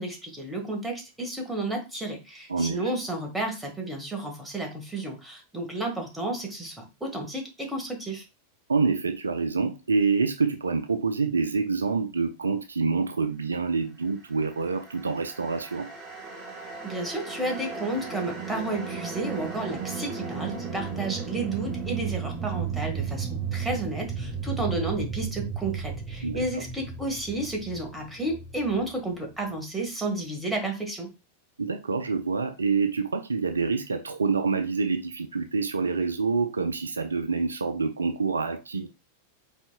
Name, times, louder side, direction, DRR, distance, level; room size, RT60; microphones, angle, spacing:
voice 1, 0.0-8.2 16.8-31.1, right 2 dB, 5° right, 1.6 m, -32 dB
voice 2, 8.7-15.9 26.2-26.4 31.6-38.9, right 4 dB, 75° right, 0.5 m, -27 dB
sound 1, 14.4-29.6, right 6 dB, 25° right, 1.4 m, -35 dB
5.4 x 4.1 x 2.2 m
figure-of-eight pair, 90°, 0 cm